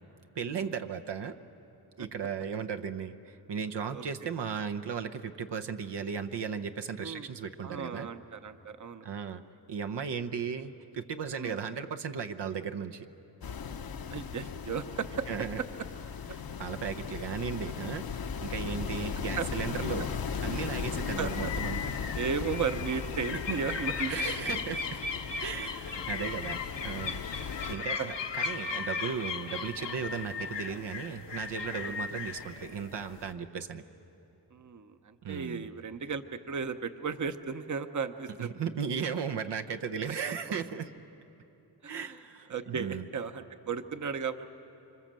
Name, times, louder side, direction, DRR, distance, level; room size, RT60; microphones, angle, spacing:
voice 1, 0.3-1.3 2.0-8.1 9.0-9.4 9.7-13.1 15.3-15.6 16.3-20.1 20.4-22.1 24.1-25.0 25.4-33.8 35.2-35.6 38.4-40.9 41.9-43.0, right 6 dB, 75° right, 7 dB, 0.9 m, -36 dB
voice 2, 7.6-9.0 11.3-11.6 14.1-15.3 19.4-19.5 21.2-21.5 22.1-24.4 27.3-27.4 28.0-28.1 30.3-30.4 31.8-31.9 34.5-38.5 41.8-42.2 42.5-44.6, right 6 dB, 45° right, 9 dB, 0.9 m, -35 dB
sound 1, 13.4-27.7, left 6 dB, 60° left, 0.9 m, -37 dB
sound 2, 20.8-33.3, left 5 dB, 90° left, 1.5 m, -37 dB
26.0 x 25.5 x 7.6 m, 2.9 s
wide cardioid pair, 85°, 41 cm